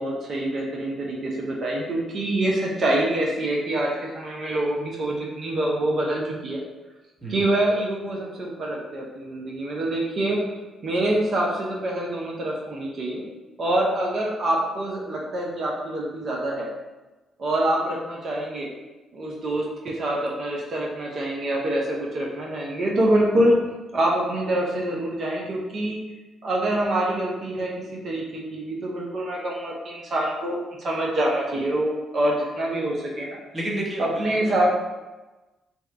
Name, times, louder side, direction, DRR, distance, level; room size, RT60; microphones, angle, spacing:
voice 1, 0.0-6.6 7.3-10.4 10.8-13.3 13.6-16.7 17.4-18.7 19.1-23.6 23.9-26.0 26.4-33.4 34.0-34.7, right 1 dB, 55° right, -3 dB, 0.6 m, -25 dB
voice 2, 33.5-34.7, right 1 dB, 30° right, -5 dB, 1.1 m, -31 dB
2.8 x 2.3 x 3.3 m, 1.1 s
supercardioid pair, 60°, 0 cm